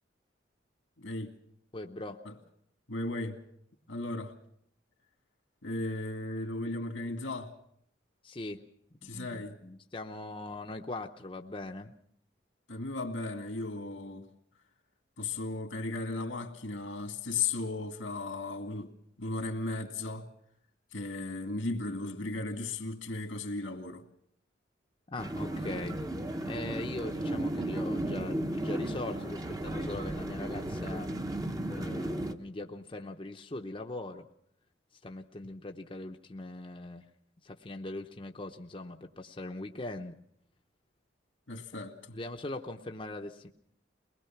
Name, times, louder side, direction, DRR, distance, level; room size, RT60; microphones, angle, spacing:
voice 1, 1.0-1.3 2.3-2.4 2.9-3.4 3.9-4.3 5.6-7.5 9.0-9.6 12.7-14.3 15.2-18.9 19.2-20.3 20.9-24.0 41.5-42.2, left 3 dB, 85° left, 2.1 m, -36 dB
voice 2, 1.7-2.2 8.2-8.6 9.0-11.9 25.1-26.0 26.4-31.1 31.7-34.2 35.0-37.0 37.4-40.2 42.1-43.5, left 2 dB, 25° left, 0.7 m, -40 dB
sound 1, 25.2-32.3, right 1 dB, 20° right, 0.9 m, -34 dB
22.5 x 20.0 x 5.9 m
head